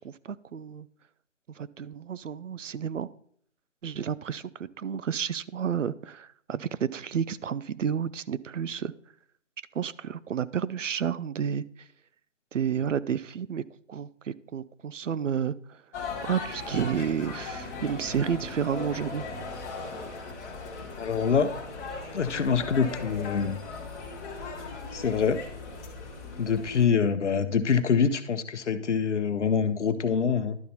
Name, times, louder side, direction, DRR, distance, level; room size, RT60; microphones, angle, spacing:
voice 1, 0.0-0.9 1.6-3.1 3.8-8.9 9.8-11.6 12.5-13.6 13.9-15.8 16.2-19.2, right 8 dB, 80° right, 17 dB, 0.5 m, -31 dB
sound 1, 15.9-26.8, left 3 dB, 15° left, 0.9 m, -38 dB
voice 2, 21.0-21.5 22.1-23.6 24.9-25.4 26.4-30.6, left 6 dB, 65° left, 11 dB, 0.8 m, -25 dB
11.5 x 4.1 x 4.2 m, 0.63 s
figure-of-eight pair, 150°, 37 cm